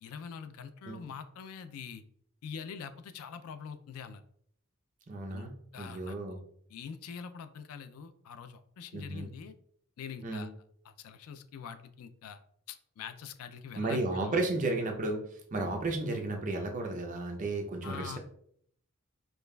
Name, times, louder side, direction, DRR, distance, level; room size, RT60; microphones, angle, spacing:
voice 1, 0.0-2.0 2.4-4.2 5.3-6.4 6.7-9.5 10.0-10.5 10.9-12.4 12.7-14.4 17.8-18.2, left 6 dB, 80° left, 11 dB, 0.3 m, -44 dB
voice 2, 5.1-6.4 8.9-9.3 10.2-10.5 13.8-18.2, right 2 dB, 35° right, 3 dB, 0.5 m, -33 dB
5.1 x 2.3 x 2.2 m, 0.66 s
head